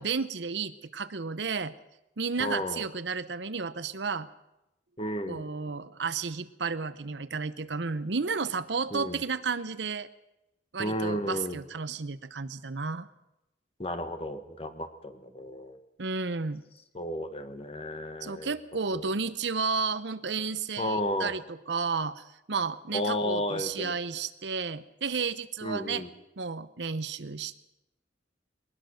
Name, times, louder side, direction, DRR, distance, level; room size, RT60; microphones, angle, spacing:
voice 1, 0.0-1.7 2.2-4.3 5.3-10.1 10.7-13.1 16.0-16.6 18.2-26.1 26.4-27.6, right 5 dB, 75° right, 14 dB, 0.8 m, -32 dB
voice 2, 2.4-2.8 5.0-5.5 8.9-9.2 10.8-11.6 13.8-15.8 16.9-18.5 18.9-19.1 20.8-21.3 22.9-23.9 25.6-26.1, left 1 dB, 30° left, 9 dB, 1.5 m, -33 dB
21.0 x 19.5 x 6.5 m, 0.92 s
head